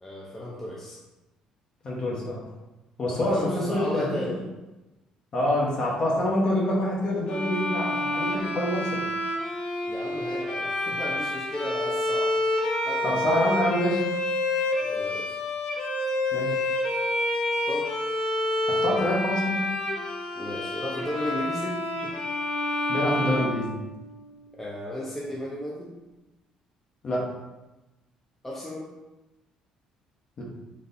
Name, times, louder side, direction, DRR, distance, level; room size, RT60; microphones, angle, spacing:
voice 1, 0.0-1.0 3.1-4.4 9.8-12.3 12.8-13.2 14.8-15.4 17.5-17.9 20.3-22.1 24.6-25.9 28.4-28.9, left 1 dB, 15° left, -5 dB, 0.7 m, -34 dB
voice 2, 1.8-2.5 3.0-4.1 5.3-9.0 13.0-14.0 16.3-16.5 18.7-19.7 22.9-23.7 27.0-27.3 30.4-30.5, left 1 dB, 40° left, -3 dB, 1.1 m, -26 dB
Bowed string instrument, 7.3-24.3, left 1 dB, 60° left, 0.8 m, -28 dB
4.1 x 3.2 x 2.7 m, 1.1 s
cardioid pair, 105°, 2 cm